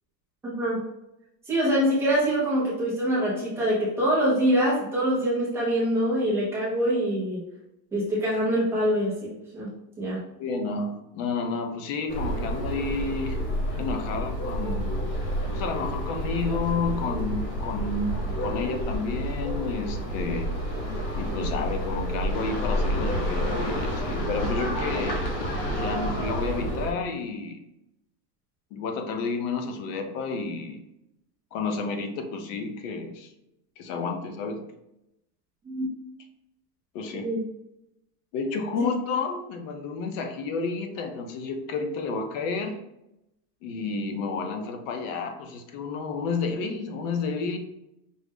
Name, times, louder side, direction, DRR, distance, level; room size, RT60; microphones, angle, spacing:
voice 1, 0.4-0.8 1.5-7.4 7.9-9.7 10.0-10.2 35.6-35.9 37.1-37.4 38.7-38.8, equal, 5° right, -8 dB, 0.3 m, -25 dB
voice 2, 10.4-13.4 13.8-15.0 15.5-20.5 21.2-25.2 25.7-27.6 28.7-30.8 31.5-33.3 33.8-34.6 36.9-37.3 38.3-42.8 43.6-47.6, left 4 dB, 50° left, 6 dB, 0.7 m, -31 dB
sound 1, 12.1-26.9, equal, 80° left, 1.1 m, -29 dB
5.2 x 2.1 x 3.5 m, 0.87 s
supercardioid pair, 160°, 50 cm